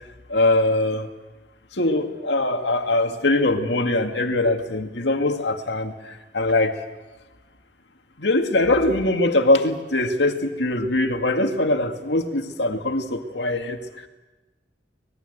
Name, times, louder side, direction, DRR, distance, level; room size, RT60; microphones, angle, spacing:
voice 1, 0.3-1.1 1.8-6.7 8.2-13.8, left 2 dB, 85° left, 5 dB, 2.1 m, -22 dB
25.0 x 20.5 x 8.0 m, 1.1 s
head